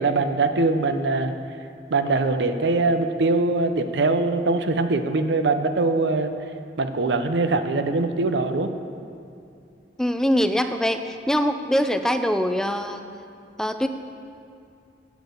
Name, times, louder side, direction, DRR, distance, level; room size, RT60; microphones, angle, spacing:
voice 1, 0.0-1.3 1.9-6.3 6.8-8.7, right 3 dB, 75° right, 9 dB, 0.6 m, -22 dB
voice 2, 10.0-13.0 13.6-13.9, equal, 5° left, 8 dB, 0.3 m, -23 dB
8.3 x 7.9 x 7.0 m, 2.5 s
head